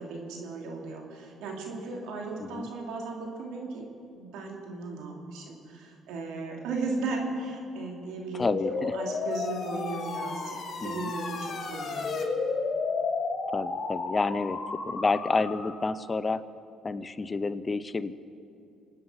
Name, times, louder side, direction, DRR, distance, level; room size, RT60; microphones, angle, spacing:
voice 1, 0.0-3.8 4.1-10.6 10.8-12.1, right 3 dB, 80° right, 1 dB, 2.8 m, -36 dB
voice 2, 8.3-8.9 10.8-11.1 13.5-14.6 14.9-16.4 16.8-18.1, left 3 dB, 30° left, 15 dB, 0.6 m, -29 dB
sound 1, 8.4-15.9, left 4 dB, 45° left, 5.2 m, -32 dB
26.0 x 9.6 x 5.7 m, 2.5 s
supercardioid pair, 80°, 0 cm